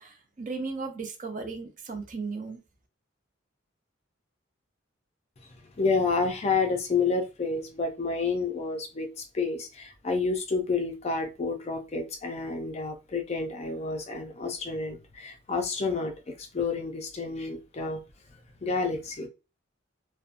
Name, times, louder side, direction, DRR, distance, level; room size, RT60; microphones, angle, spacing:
voice 1, 0.0-2.6, right 4 dB, 40° right, 0.6 m, -36 dB
voice 2, 5.8-18.0 18.6-19.3, left 4 dB, 35° left, 0.4 m, -29 dB
2.6 x 2.2 x 2.5 m
head